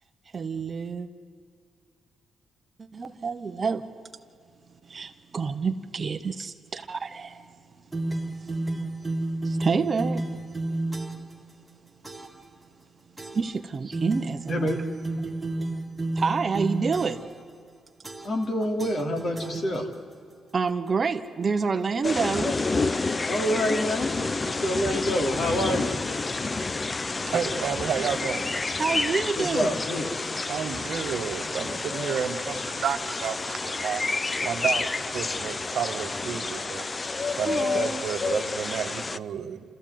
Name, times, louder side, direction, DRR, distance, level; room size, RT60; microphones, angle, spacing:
voice 1, 0.3-1.1 2.8-3.9 4.7-8.0 8.4-10.3 11.2-11.9 13.3-14.8 15.2-15.3 16.1-17.2 20.5-22.6 28.8-29.7 37.5-38.1, right 5 dB, 35° right, 0.9 m, -29 dB
sound 1, 7.9-11.3 12.0-12.4 13.2-13.6 13.9-17.4 18.0-18.5 18.8-20.1, right 2 dB, 10° right, 1.6 m, -32 dB
voice 2, 14.5-14.8 18.2-19.9 23.3-24.1 24.4-25.9 29.4-30.1, equal, 45° left, 2.9 m, -27 dB
sound 2, 22.0-39.2, left 3 dB, 25° left, 0.5 m, -29 dB
voice 3, 27.3-28.5 30.3-34.0 34.4-36.9 37.3-39.6, right 7 dB, 70° right, 1.4 m, -31 dB
28.0 x 14.0 x 9.3 m
cardioid pair, 120°, 0 cm